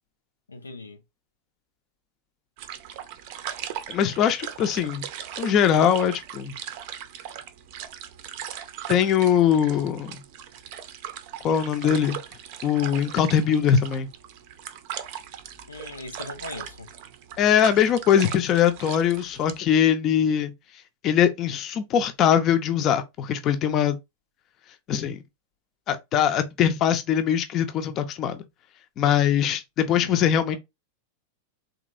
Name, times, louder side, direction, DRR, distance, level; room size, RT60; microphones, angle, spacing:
voice 1, 0.5-1.0 15.7-16.9 29.9-30.6, left 3 dB, 75° left, 0.6 m, -39 dB
sound 1, 2.6-19.6, right 10 dB, 50° right, 0.5 m, -39 dB
voice 2, 3.9-5.0 5.4-6.6 8.9-10.2 11.4-12.2 12.6-14.1 17.4-20.5 21.0-24.0 24.9-25.2 25.9-28.4 29.0-30.6, left 9 dB, 35° left, 0.6 m, -22 dB
3.9 x 2.9 x 2.5 m
figure-of-eight pair, 90°, 0 cm